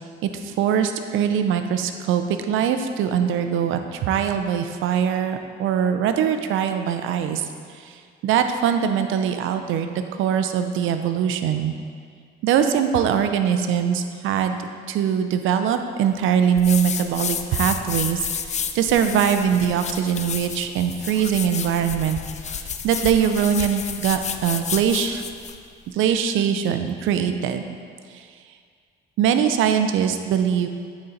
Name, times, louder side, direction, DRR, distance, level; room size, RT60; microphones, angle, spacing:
voice 1, 0.2-7.5 7.8-8.0 8.2-11.7 12.4-14.6 14.9-22.2 22.5-25.2 25.9-27.8 28.1-28.3 29.2-30.7, right 8 dB, 85° right, 7 dB, 0.5 m, -22 dB
sound 1, 16.6-25.6, left 7 dB, 35° left, 0.4 m, -31 dB
8.8 x 4.1 x 3.9 m, 2.1 s
cardioid pair, 90°, 20 cm